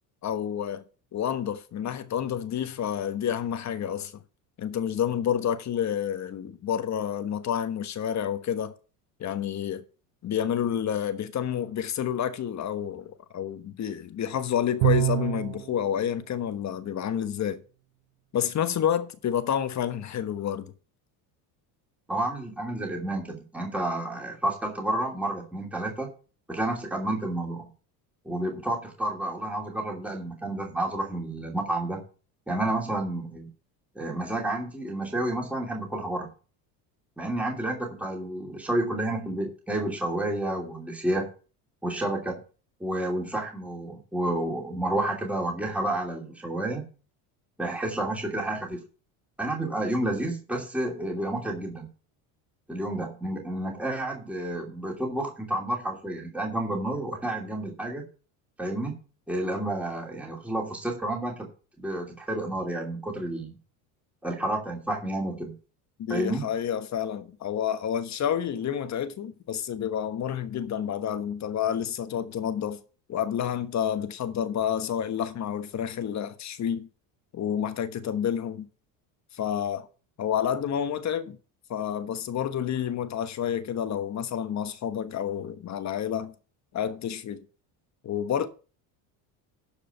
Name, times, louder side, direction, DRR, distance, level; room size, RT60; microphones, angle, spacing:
voice 1, 0.2-0.8 1.1-4.2 4.6-8.7 9.2-9.8 10.2-17.6 18.3-20.7 66.0-72.8 73.1-76.9 77.3-78.7 79.3-79.9 80.2-81.4 81.7-86.3 86.7-87.4 88.0-88.5, left 9 dB, 40° left, 1.2 m, -29 dB
Bowed string instrument, 14.8-15.7, right 20 dB, 85° right, 0.7 m, -24 dB
voice 2, 22.1-26.1 26.5-27.7 28.2-32.0 32.5-33.5 33.9-36.3 37.2-41.3 41.8-42.4 42.8-46.8 47.6-48.8 49.4-51.9 52.7-58.0 58.6-58.9 59.3-61.5 61.8-63.6 64.2-65.6 66.1-66.5, right 1 dB, 5° right, 2.8 m, -30 dB
12.5 x 5.1 x 5.7 m
supercardioid pair, 110°, 42 cm